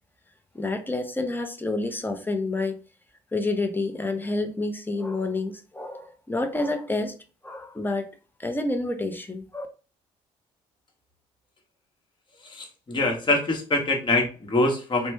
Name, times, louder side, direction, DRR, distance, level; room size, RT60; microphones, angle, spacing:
voice 1, 0.5-2.8 3.3-7.1 7.4-8.1 8.4-9.7, left 2 dB, 10° left, 0.7 m, -28 dB
voice 2, 12.4-15.1, left 2 dB, 30° left, 1.1 m, -24 dB
3.1 x 2.2 x 3.1 m
hypercardioid pair, 55°, 16 cm